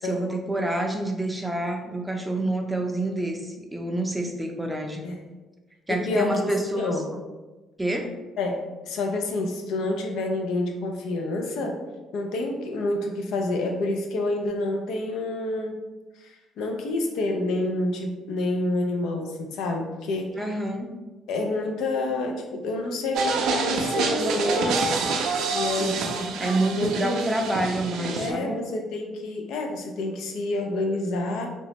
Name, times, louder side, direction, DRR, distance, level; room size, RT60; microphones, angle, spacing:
voice 1, 0.0-5.1 5.9-7.0 7.8-8.1 20.4-20.9 25.8-28.6, right 1 dB, 10° right, 2 dB, 0.4 m, -28 dB
voice 2, 5.9-6.5 6.8-7.1 8.4-11.8 12.1-15.8 16.2-20.4 21.3-24.9 25.5-26.3 26.8-27.2 28.2-31.5, left 2 dB, 80° left, 3 dB, 0.4 m, -28 dB
sound 1, 23.1-28.3, right 4 dB, 85° right, 0.3 m, -27 dB
2.9 x 2.1 x 2.8 m, 1.2 s
cardioid pair, 90°, 0 cm